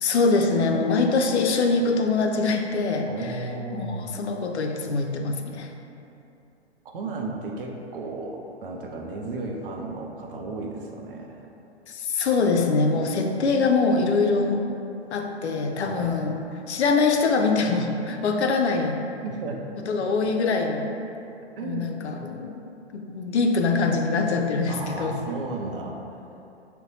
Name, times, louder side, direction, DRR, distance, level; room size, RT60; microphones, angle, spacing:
voice 1, 0.0-3.1 3.7-5.7 11.9-14.6 15.1-16.4 16.7-19.0 19.8-20.9 21.6-22.5 22.9-25.2, left 4 dB, 75° left, 3 dB, 0.5 m, -23 dB
voice 2, 3.0-4.1 6.8-11.4 15.8-16.2 19.2-19.6 21.6-22.4 24.7-26.0, right 3 dB, 55° right, 1 dB, 0.6 m, -34 dB
4.0 x 2.1 x 3.9 m, 2.8 s
figure-of-eight pair, 115°, 34 cm